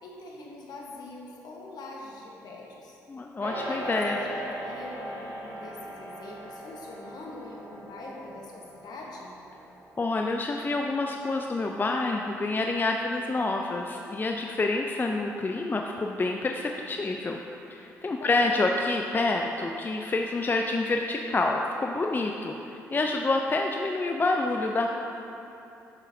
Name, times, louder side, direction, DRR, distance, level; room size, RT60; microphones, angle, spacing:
voice 1, 0.0-3.0 3.7-9.3 18.2-18.4, left 2 dB, 60° left, -2 dB, 1.2 m, -43 dB
voice 2, 3.1-4.2 10.0-17.4 17.7-24.9, left 2 dB, 25° left, 2 dB, 0.4 m, -28 dB
sound 1, 3.4-12.9, right 1 dB, 55° right, 1.5 m, -40 dB
8.0 x 6.1 x 2.7 m, 2.9 s
hypercardioid pair, 50°, 8 cm